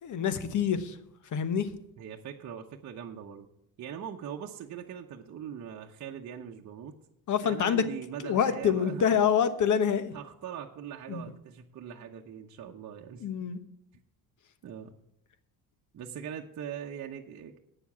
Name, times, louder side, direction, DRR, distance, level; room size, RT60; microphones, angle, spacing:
voice 1, 0.0-1.0 1.3-1.7 7.3-7.9 8.2-10.1 11.1-11.2 13.2-13.6, left 7 dB, 50° left, 12 dB, 1.2 m, -26 dB
voice 2, 2.0-3.5 3.8-7.0 7.4-9.1 10.1-13.3 13.9-14.0 14.6-14.9 15.9-17.6, right 8 dB, 45° right, 1 dB, 0.9 m, -41 dB
8.9 x 7.1 x 8.5 m, 0.76 s
supercardioid pair, 90°, 39 cm